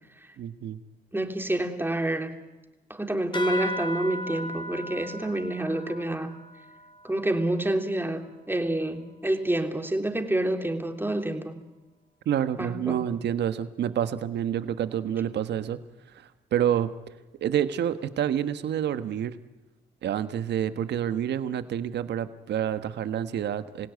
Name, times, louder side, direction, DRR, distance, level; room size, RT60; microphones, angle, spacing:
voice 1, 0.4-0.8 12.2-15.8 16.5-16.9 17.4-19.4 20.0-23.9, right 9 dB, 70° right, 12 dB, 1.4 m, -28 dB
voice 2, 1.1-2.4 2.9-6.3 7.0-11.6 12.6-13.0, right 1 dB, 10° right, 5 dB, 3.3 m, -28 dB
sound 1, 3.3-8.3, left 1 dB, 25° left, 3.3 m, -37 dB
27.5 x 16.5 x 9.5 m, 1.1 s
supercardioid pair, 60°, 18 cm